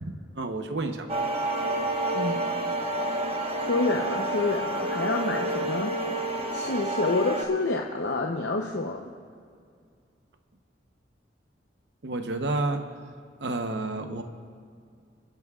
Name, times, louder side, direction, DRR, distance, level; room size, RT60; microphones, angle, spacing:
voice 1, 0.0-1.2 12.0-12.8 13.4-14.2, right 2 dB, 75° right, 6 dB, 0.9 m, -30 dB
sound 1, 1.1-7.4, right 2 dB, 35° right, 1.2 m, -29 dB
voice 2, 2.1-2.4 2.9-3.0 3.2-6.2 6.5-9.1, left 3 dB, 80° left, 1 dB, 0.8 m, -28 dB
28.5 x 10.5 x 2.4 m, 2.2 s
head